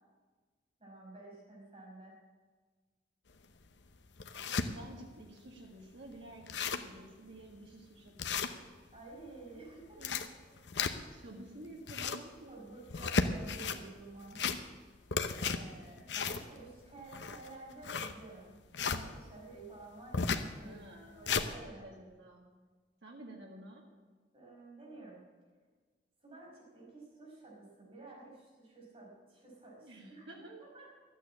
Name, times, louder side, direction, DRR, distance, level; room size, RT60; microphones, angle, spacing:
voice 1, 0.8-2.2 4.8-4.9 8.9-10.0 10.4-10.6 12.5-14.4 15.4-18.5 18.8-20.8 21.1-21.9 24.3-25.2 26.2-30.9, right 2 dB, 35° right, -3 dB, 5.2 m, -51 dB
sound 1, 3.3-3.4 3.9-4.7 5.2-5.3 5.6-5.7 6.1-6.2 6.4-7.0 7.4-7.5 8.2-9.0 9.8-11.2 11.7-12.3 12.8-13.8 14.2-14.8 15.1-19.0 20.1-20.5 20.9-21.5, left 5 dB, 80° left, 0.9 m, -34 dB
voice 2, 4.5-8.5 10.0-10.3 11.1-12.6 20.6-21.3 21.6-22.4 23.0-23.8 29.8-30.6, right 1 dB, 90° right, -1 dB, 1.8 m, -51 dB
12.5 x 9.1 x 8.7 m, 1.4 s
head